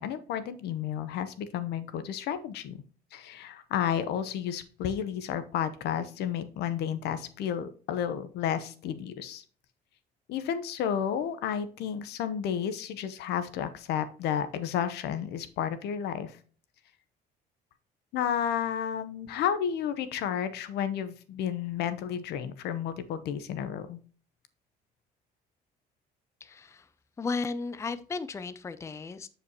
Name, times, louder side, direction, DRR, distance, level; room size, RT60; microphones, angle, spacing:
voice 1, 0.0-2.8 3.1-9.4 10.3-16.4 18.1-24.0 27.9-28.0, left 9 dB, 80° left, 12 dB, 0.9 m, -32 dB
voice 2, 26.4-26.9 27.2-29.3, left 4 dB, 15° left, 13 dB, 0.5 m, -34 dB
8.2 x 5.0 x 2.9 m, 0.40 s
cardioid pair, 110°, 17 cm